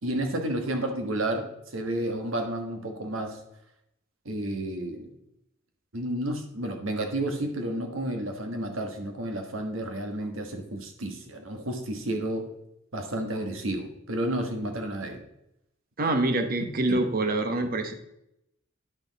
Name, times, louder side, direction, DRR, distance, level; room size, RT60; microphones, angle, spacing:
voice 1, 0.0-1.5 1.7-3.4 4.2-5.1 5.9-12.4 12.9-15.2 16.0-16.1 16.6-17.0, right 1 dB, 75° right, 5 dB, 1.4 m, -31 dB
voice 2, 16.0-17.9, right 2 dB, 45° right, 7 dB, 1.0 m, -25 dB
9.8 x 6.2 x 4.0 m, 0.81 s
head